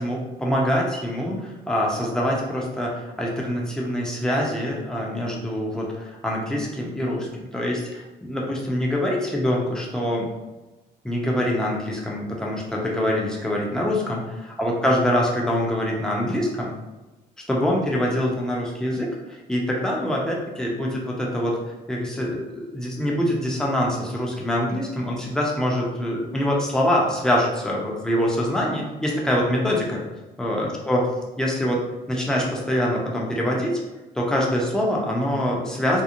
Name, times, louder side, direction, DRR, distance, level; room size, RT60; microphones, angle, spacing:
voice 1, 0.0-10.3 11.0-14.2 14.6-16.7 17.5-21.5 21.9-30.0 30.4-31.1 31.4-31.8 32.1-33.8 34.1-36.0, equal, 5° left, -3 dB, 0.6 m, -24 dB
2.9 x 2.0 x 2.5 m, 1.1 s
cardioid pair, 110°, 17 cm